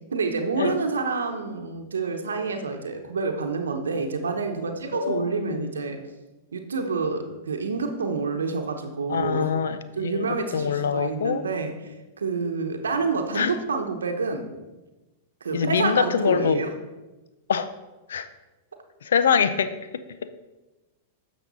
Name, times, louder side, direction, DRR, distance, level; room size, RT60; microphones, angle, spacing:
voice 1, 0.1-6.0 6.5-9.5 10.0-14.5 15.4-16.7, right 4 dB, 90° right, 5 dB, 0.9 m, -28 dB
voice 2, 4.9-5.7 9.1-11.4 13.3-13.5 15.5-16.6 17.5-17.7 18.1-18.3 19.0-20.0, left 7 dB, 80° left, 12 dB, 0.6 m, -24 dB
10.5 x 6.4 x 4.1 m, 1.1 s
hypercardioid pair, 110°, 0 cm